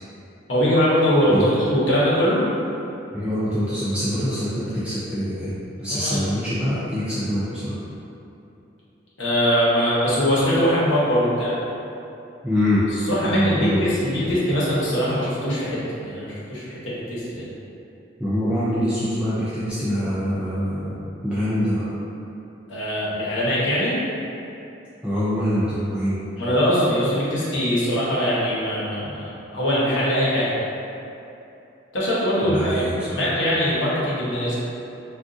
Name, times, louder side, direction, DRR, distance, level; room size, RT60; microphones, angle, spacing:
voice 1, 0.5-2.4 5.9-6.3 9.2-11.5 13.1-17.4 22.7-24.0 26.4-30.5 31.9-32.8 33.1-34.6, equal, 75° left, -8 dB, 0.9 m, -22 dB
voice 2, 3.1-7.8 12.4-12.8 13.2-13.9 18.2-21.0 21.2-21.8 25.0-26.2 32.4-33.2, equal, 5° right, -12 dB, 0.4 m, -24 dB
3.7 x 2.4 x 2.6 m, 2.9 s
head